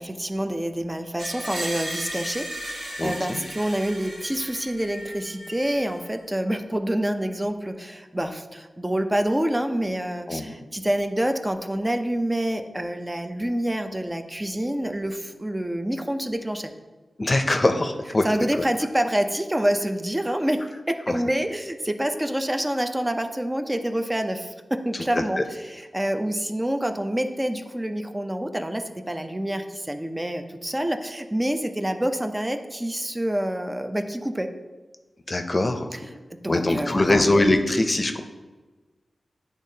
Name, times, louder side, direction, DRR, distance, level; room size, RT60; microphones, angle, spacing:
voice 1, 0.0-16.7 18.2-34.5 35.9-36.0 36.3-37.2, right 1 dB, 15° right, 6 dB, 0.6 m, -27 dB
Screech, 1.2-6.1, right 1 dB, 90° right, 1.6 m, -36 dB
voice 2, 3.0-3.4 10.3-10.6 17.2-18.2 21.1-21.2 25.1-25.4 35.3-35.9 36.5-38.2, left 2 dB, 40° left, 6 dB, 0.6 m, -22 dB
10.0 x 3.6 x 2.8 m, 1.3 s
cardioid pair, 55°, 0 cm